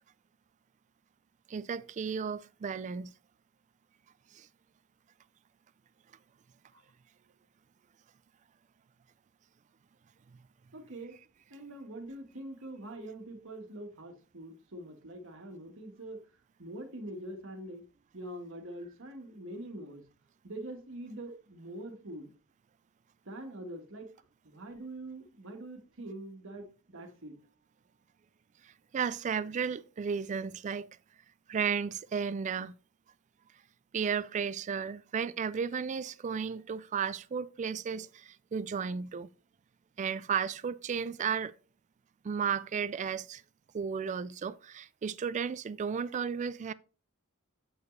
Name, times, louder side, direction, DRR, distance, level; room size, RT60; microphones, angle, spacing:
voice 1, 1.5-3.1 4.3-4.5 28.9-30.9 31.5-32.7 33.9-39.3 40.0-41.5 42.2-43.4 43.7-46.7, right 6 dB, 35° right, 0.3 m, -34 dB
voice 2, 10.7-11.1 11.5-16.2 16.6-17.8 18.1-20.0 20.4-22.3 23.2-24.1 24.4-27.5, right 1 dB, 65° right, 1.5 m, -44 dB
8.4 x 4.7 x 3.2 m
head